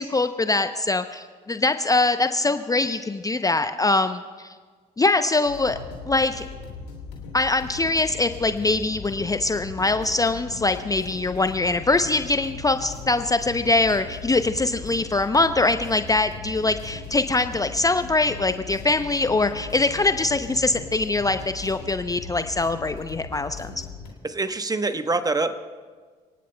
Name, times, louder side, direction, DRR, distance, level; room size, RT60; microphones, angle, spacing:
voice 1, 0.0-4.5 5.0-5.8 6.1-6.4 7.3-23.7, left 3 dB, 15° left, 9 dB, 0.7 m, -23 dB
sound 1, 5.4-24.1, left 5 dB, 80° left, 2.5 m, -39 dB
voice 2, 24.2-25.6, right 3 dB, 20° right, 9 dB, 1.1 m, -25 dB
28.5 x 18.5 x 2.3 m, 1.5 s
hypercardioid pair, 55°, 21 cm